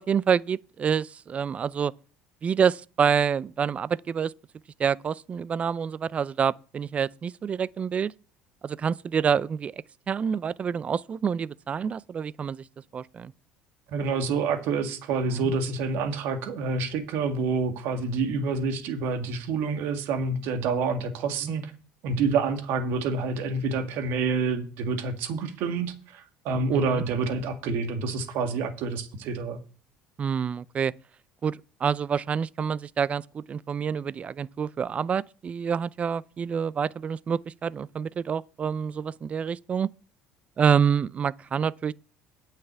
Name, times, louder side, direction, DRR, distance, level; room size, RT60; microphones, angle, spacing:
voice 1, 0.0-1.9 2.4-4.3 4.8-8.1 8.6-12.6 12.9-13.3 15.3-15.5 21.4-21.5 26.7-27.0 30.2-30.9 31.4-39.9 40.6-41.9, right 7 dB, 35° right, 0.4 m, -27 dB
voice 2, 13.9-21.7 22.0-29.6, right 4 dB, 70° right, 1.9 m, -28 dB
9.1 x 5.8 x 8.1 m
supercardioid pair, 95°, 4 cm